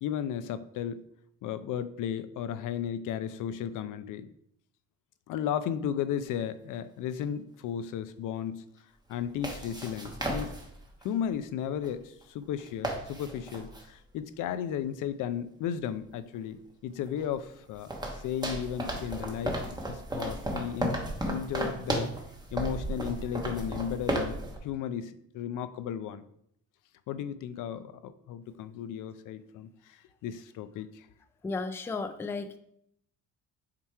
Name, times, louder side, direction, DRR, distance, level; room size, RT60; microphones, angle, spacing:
voice 1, 0.0-1.0 1.4-4.3 5.3-8.6 9.1-10.5 11.0-17.9 18.2-19.6 19.8-22.1 22.5-26.2 27.1-31.1, left 9 dB, 70° left, 12 dB, 0.5 m, -34 dB
sound 1, 6.3-6.4 9.1-11.1 11.8-11.9 12.2-12.3 12.6-13.9 16.4-16.5 17.1-24.6, right 1 dB, 10° right, 1.0 m, -34 dB
voice 2, 31.4-32.6, left 3 dB, 10° left, 9 dB, 0.3 m, -34 dB
7.4 x 3.0 x 4.6 m, 0.71 s
cardioid pair, 125°, 33 cm